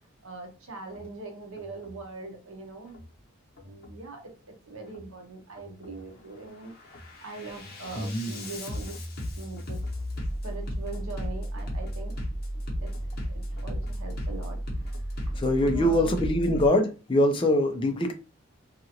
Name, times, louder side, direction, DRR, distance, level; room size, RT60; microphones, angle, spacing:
voice 1, 0.2-3.0 3.6-4.3 4.7-6.7 7.2-9.0 9.4-9.8 10.4-12.1 12.8-12.9 13.6-14.6 14.9-15.0 15.6-16.2, right 3 dB, 80° right, 0.8 m, -41 dB
Bass drum, 0.9-1.1 1.6-2.0 2.8-3.1 3.6-4.1 4.8-5.1 5.6-6.1 6.5-16.7, equal, 45° left, 0.8 m, -34 dB
voice 2, 8.0-8.5 15.3-18.1, left 1 dB, 25° left, 0.4 m, -24 dB
2.8 x 2.4 x 2.8 m
head